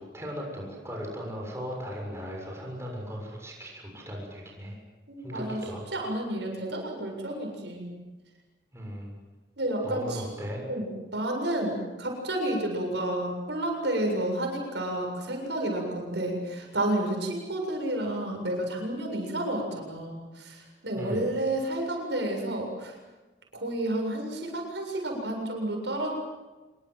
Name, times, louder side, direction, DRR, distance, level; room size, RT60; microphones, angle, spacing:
voice 1, 0.0-4.8 5.2-6.0 8.7-9.1 9.8-10.6 20.9-21.2, equal, 15° right, -1 dB, 6.9 m, -37 dB
voice 2, 5.1-5.6 5.9-7.9 9.6-10.2 10.7-22.9 23.5-26.1, right 1 dB, 70° right, 2 dB, 7.5 m, -30 dB
26.5 x 24.0 x 7.8 m, 1.1 s
head